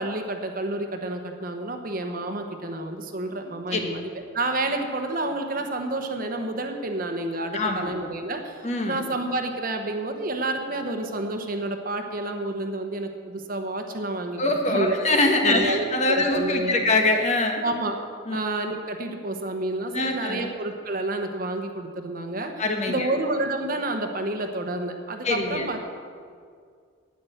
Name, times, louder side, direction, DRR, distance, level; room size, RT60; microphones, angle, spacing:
voice 1, 0.0-14.4 14.7-15.0 15.4-16.8 17.6-17.9 18.3-22.5 22.9-25.9, right 2 dB, 45° right, 5 dB, 1.0 m, -29 dB
voice 2, 7.5-7.9 8.6-9.0 14.4-17.6 18.3-18.4 19.9-20.4 22.6-23.1 25.2-25.7, left 2 dB, 35° left, 3 dB, 1.4 m, -23 dB
10.0 x 9.6 x 7.9 m, 2.1 s
head